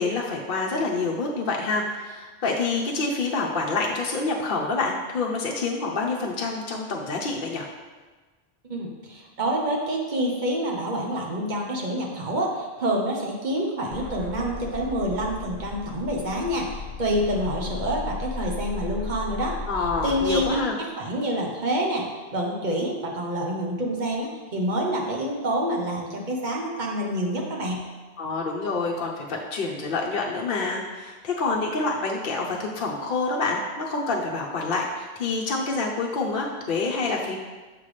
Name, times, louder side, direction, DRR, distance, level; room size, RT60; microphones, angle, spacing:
voice 1, 0.0-7.7 19.7-20.8 28.2-37.4, left 3 dB, 60° left, -2 dB, 0.8 m, -27 dB
voice 2, 8.7-19.6 20.0-20.6 21.0-22.0 22.3-27.9, right 1 dB, 50° right, 0 dB, 1.1 m, -27 dB
sound 1, 13.9-20.5, left 2 dB, 90° right, 1.8 m, -36 dB
6.8 x 5.7 x 3.2 m, 1.3 s
omnidirectional pair, 1.1 m